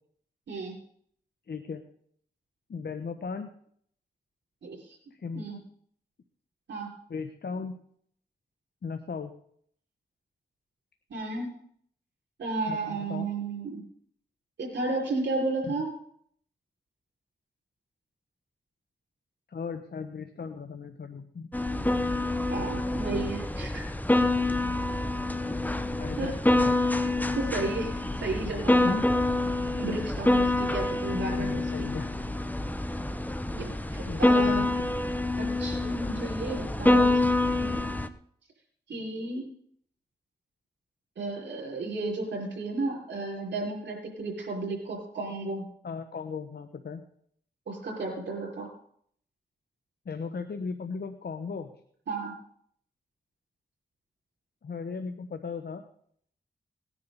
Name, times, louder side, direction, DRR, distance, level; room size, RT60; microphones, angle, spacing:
voice 1, 1.5-1.8 2.7-3.5 5.1-5.6 7.1-7.8 8.8-9.3 12.7-13.3 15.7-15.8 19.5-21.5 26.0-26.4 28.8-29.1 31.4-32.1 34.0-34.7 45.8-47.0 50.0-51.7 54.6-55.8, left 5 dB, 65° left, 8 dB, 1.1 m, -36 dB
voice 2, 4.6-5.0 5.3-5.6 6.7-6.9 11.1-11.5 12.4-13.8 14.6-15.9 22.5-23.9 26.2-26.3 27.0-28.9 29.8-31.9 33.5-34.7 35.4-37.2 37.6-37.9 38.9-39.4 41.2-45.7 47.7-48.7 52.1-52.3, right 3 dB, 85° right, -1 dB, 5.6 m, -33 dB
sound 1, 21.5-38.1, left 2 dB, 10° left, 0.9 m, -26 dB
19.5 x 10.5 x 4.2 m, 0.64 s
cardioid pair, 50°, 18 cm